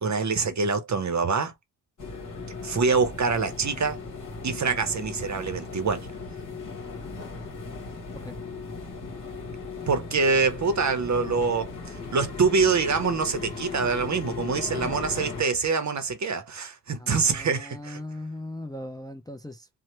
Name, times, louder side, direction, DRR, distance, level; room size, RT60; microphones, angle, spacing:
voice 1, 0.0-1.5 2.6-4.0 4.4-6.1 9.9-18.0, right 4 dB, 45° right, 0.7 m, -25 dB
sound 1, 2.0-15.4, left 4 dB, 50° left, 1.2 m, -37 dB
voice 2, 16.9-19.8, left 1 dB, 10° left, 0.4 m, -39 dB
2.8 x 2.1 x 3.0 m
cardioid pair, 70°, 41 cm